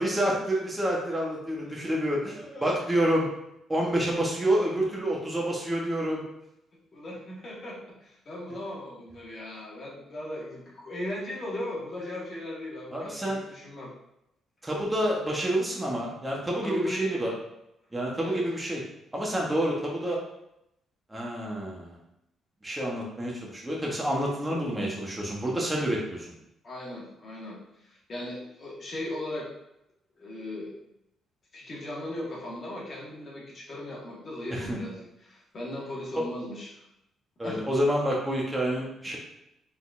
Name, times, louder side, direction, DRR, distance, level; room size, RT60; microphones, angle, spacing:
voice 1, 0.0-3.3 3.7-6.2 12.9-13.4 14.6-17.3 17.9-18.8 19.1-20.2 21.1-22.0 22.6-26.3 34.5-34.8 36.1-36.2 37.4-39.2, right 1 dB, 15° right, -3 dB, 1.1 m, -28 dB
voice 2, 2.3-2.8 6.9-13.9 16.6-17.3 18.2-18.4 26.6-27.6 27.9-29.5 30.2-30.7 31.5-36.8 37.4-37.6, left 1 dB, 45° left, -4 dB, 1.5 m, -37 dB
4.0 x 3.9 x 2.6 m, 0.82 s
cardioid pair, 90°, 0 cm